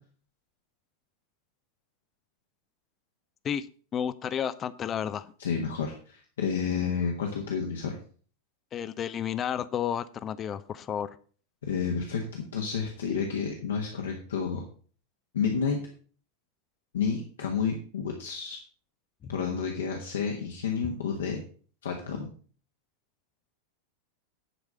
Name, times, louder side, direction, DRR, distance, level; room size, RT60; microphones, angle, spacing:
voice 1, 3.9-5.3 8.7-11.2, left 9 dB, 25° left, 15 dB, 0.6 m, -31 dB
voice 2, 5.4-8.0 11.6-14.6 15.3-15.8 16.9-18.6 19.3-21.4 21.8-22.3, left 6 dB, 65° left, 1 dB, 1.5 m, -30 dB
11.0 x 4.8 x 6.7 m, 0.43 s
figure-of-eight pair, 90°, 0 cm